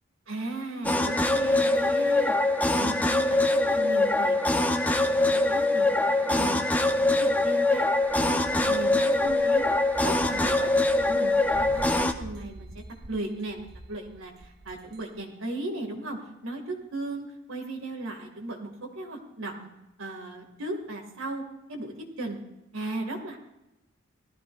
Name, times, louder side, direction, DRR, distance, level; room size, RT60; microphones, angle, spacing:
voice 1, 0.3-2.4 2.8-4.4 4.7-6.6 7.0-7.8 8.2-9.7 10.0-10.7 11.0-19.7 20.0-21.4 21.7-22.4 22.7-23.4, right 2 dB, 80° right, 1 dB, 2.3 m, -36 dB
sound 1, 0.8-12.1, left 2 dB, 10° left, 0.6 m, -23 dB
sound 2, 7.8-15.2, right 1 dB, 55° right, 1.0 m, -45 dB
18.0 x 13.5 x 2.6 m, 0.92 s
head